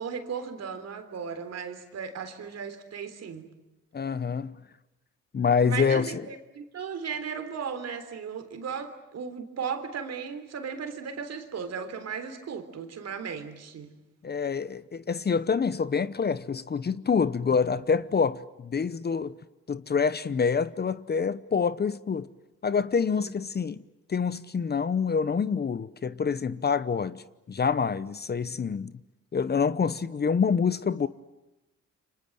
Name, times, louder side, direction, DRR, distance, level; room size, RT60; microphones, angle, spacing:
voice 1, 0.0-3.5 5.6-13.9 23.1-23.3, right 6 dB, 55° right, 3.6 m, -36 dB
voice 2, 3.9-4.6 5.3-6.2 14.2-19.4 19.7-22.3 22.6-23.8 24.1-28.9 29.3-31.1, left 6 dB, 35° left, 0.9 m, -26 dB
28.5 x 25.5 x 7.9 m
cardioid pair, 90°, 30 cm